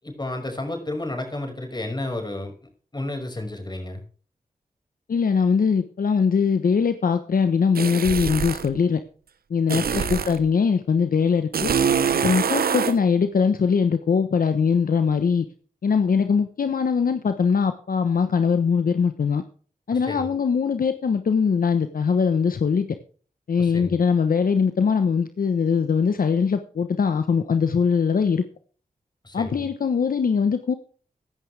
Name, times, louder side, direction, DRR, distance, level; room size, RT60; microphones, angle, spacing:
voice 1, 0.0-2.5 2.9-4.0 10.0-10.2 19.9-20.3 23.6-24.0 29.2-29.7, left 1 dB, 30° left, 4 dB, 5.7 m, -32 dB
voice 2, 5.1-9.0 9.5-11.7 12.2-15.4 15.8-19.4 19.9-22.9 23.5-28.4 29.3-30.7, left 6 dB, 70° left, 9 dB, 1.1 m, -21 dB
sound 1, 7.8-8.7 9.7-10.4 11.5-13.0, right 7 dB, 85° right, 1.0 m, -24 dB
15.0 x 11.0 x 3.4 m, 0.41 s
cardioid pair, 60°, 15 cm